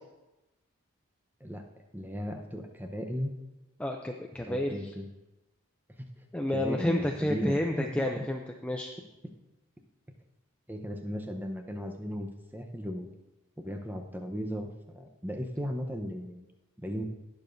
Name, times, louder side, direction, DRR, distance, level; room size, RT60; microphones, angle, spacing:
voice 1, 1.9-3.3 4.4-5.0 6.5-8.2 10.7-13.1 13.6-16.5 16.8-17.0, equal, 10° right, 3 dB, 0.7 m, -36 dB
voice 2, 3.8-4.9 6.3-8.9, left 1 dB, 5° left, 2 dB, 0.4 m, -30 dB
19.5 x 6.9 x 2.6 m, 1.0 s
head